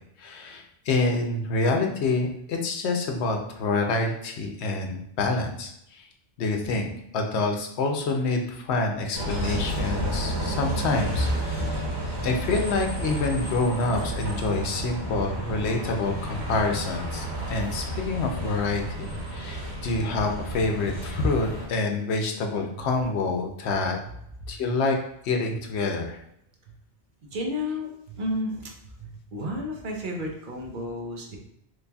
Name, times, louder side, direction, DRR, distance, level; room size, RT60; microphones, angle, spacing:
voice 1, 0.2-5.7 6.4-6.9 7.1-11.9 12.2-24.0 24.5-25.0 25.2-26.2, left 3 dB, 85° left, 3 dB, 0.9 m, -27 dB
Bus, 9.1-21.6, right 1 dB, 75° right, 1.7 m, -31 dB
voice 2, 27.3-28.7 29.0-31.4, left 1 dB, 55° right, 1 dB, 0.8 m, -32 dB
4.0 x 3.1 x 2.3 m, 0.75 s
omnidirectional pair, 1.1 m